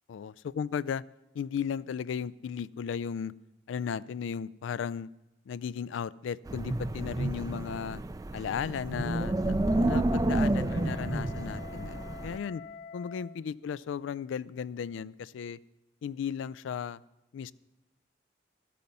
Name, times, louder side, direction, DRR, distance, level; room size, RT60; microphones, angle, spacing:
voice 1, 0.1-1.0 1.3-3.3 3.7-5.1 5.5-8.0 8.3-12.6 12.9-15.6 16.0-17.0 17.3-17.5, left 7 dB, 85° left, 20 dB, 0.3 m, -35 dB
Wind, 6.5-12.4, right 2 dB, 20° right, 0.3 m, -30 dB
Wind instrument woodwind instrument, 8.7-13.4, left 6 dB, 45° left, 0.6 m, -47 dB
13.5 x 8.5 x 5.4 m, 0.96 s
head